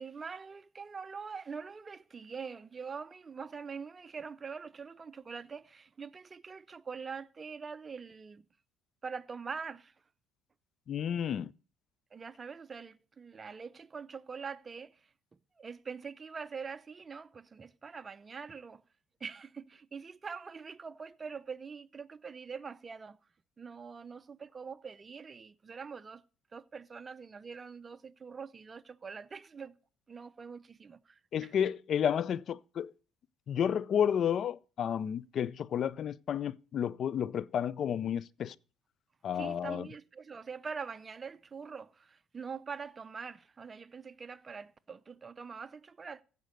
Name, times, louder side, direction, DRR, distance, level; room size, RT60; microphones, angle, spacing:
voice 1, 0.0-8.5 9.0-9.9 12.1-15.0 15.6-18.8 19.2-23.2 23.6-26.2 26.5-29.8 30.1-31.5 39.3-46.2, right 5 dB, 30° right, 0.6 m, -44 dB
voice 2, 10.9-11.5 31.3-32.9 33.5-38.5 39.2-39.9, left 8 dB, 55° left, 0.5 m, -31 dB
15.0 x 5.2 x 6.6 m
supercardioid pair, 75°, 0 cm